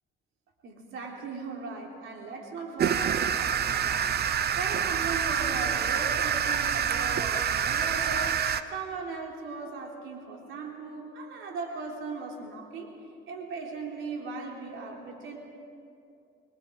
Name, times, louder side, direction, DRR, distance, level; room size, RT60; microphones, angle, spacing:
voice 1, 0.6-4.2 4.6-8.4 8.7-12.9 13.3-15.4, right 4 dB, 80° right, 0 dB, 3.7 m, -38 dB
sound 1, 2.8-8.6, right 8 dB, 55° right, 0.8 m, -27 dB
27.0 x 20.5 x 5.3 m, 2.6 s
cardioid pair, 90°, 20 cm